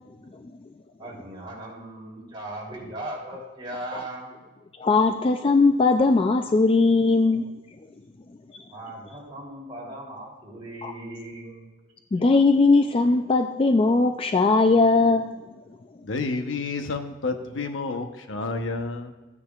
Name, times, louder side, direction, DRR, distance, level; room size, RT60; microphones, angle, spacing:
voice 1, 1.0-4.3 8.7-11.7, right 1 dB, 30° right, -3 dB, 3.1 m, -38 dB
voice 2, 4.8-7.4 10.8-10.9 12.1-15.3, left 3 dB, 30° left, 6 dB, 0.3 m, -19 dB
voice 3, 16.0-19.1, left 3 dB, 90° left, 6 dB, 0.9 m, -30 dB
14.5 x 9.6 x 2.4 m, 1.2 s
head